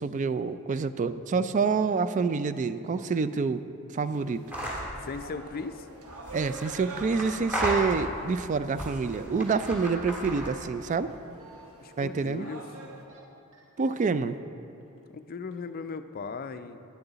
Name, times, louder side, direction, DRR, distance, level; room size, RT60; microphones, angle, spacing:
voice 1, 0.0-3.6 3.9-4.5 6.3-11.1 12.0-12.5 13.8-14.4, right 4 dB, 35° right, 13 dB, 0.3 m, -27 dB
sound 1, 4.1-13.0, right 2 dB, 75° right, 1.2 m, -47 dB
sound 2, 4.5-4.9 6.1-8.3 8.7-10.7, equal, 5° right, 1.8 m, -34 dB
voice 2, 5.0-5.9 11.8-12.6 15.1-16.8, left 4 dB, 40° left, 10 dB, 0.4 m, -37 dB
sound 3, 10.4-10.5 11.1-11.7 12.9-13.2 13.5-13.9 14.6-15.1 15.5-15.6, right 3 dB, 60° right, 1.8 m, -55 dB
11.0 x 10.5 x 4.0 m, 2.6 s
head